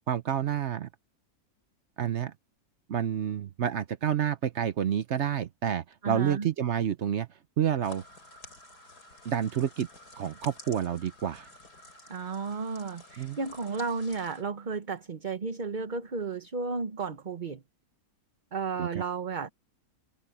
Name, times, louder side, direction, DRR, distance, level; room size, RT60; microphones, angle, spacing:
voice 1, 0.1-0.9 2.0-2.3 2.9-7.3 7.6-8.0 9.2-9.9 10.2-11.5 13.2-13.4 18.8-19.0, right 9 dB, 55° right, 0.9 m, -29 dB
voice 2, 6.0-6.5 12.1-17.6 18.5-19.5, right 4 dB, 35° right, 1.1 m, -33 dB
sound 1, 7.8-14.4, left 2 dB, 90° left, 5.2 m, -51 dB
open air
omnidirectional pair, 1.6 m